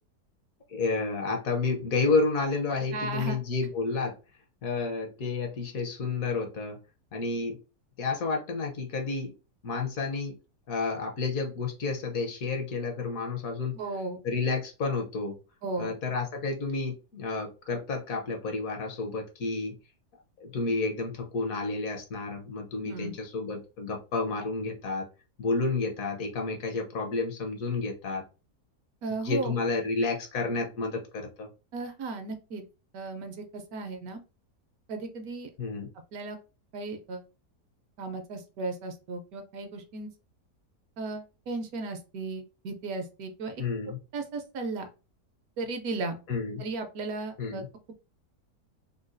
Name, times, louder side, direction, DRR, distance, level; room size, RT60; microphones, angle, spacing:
voice 1, 0.7-4.1 4.6-6.8 7.1-7.6 8.0-9.3 9.6-10.4 10.7-13.8 14.2-15.4 15.8-19.8 20.4-25.1 25.4-28.2 29.1-31.5 35.6-35.9 43.6-44.0 46.3-46.6 47.4-47.7, left 4 dB, 65° left, 3 dB, 1.1 m, -30 dB
voice 2, 2.9-3.4 13.7-14.2 15.6-15.9 22.8-23.1 29.0-29.5 31.7-32.6 32.9-34.2 34.9-35.5 36.1-36.4 36.7-37.2 38.0-40.1 41.0-43.6 44.1-44.9 45.6-46.2 46.6-47.6, right 3 dB, 70° right, 6 dB, 1.0 m, -35 dB
3.8 x 2.2 x 2.5 m, 0.31 s
omnidirectional pair, 1.7 m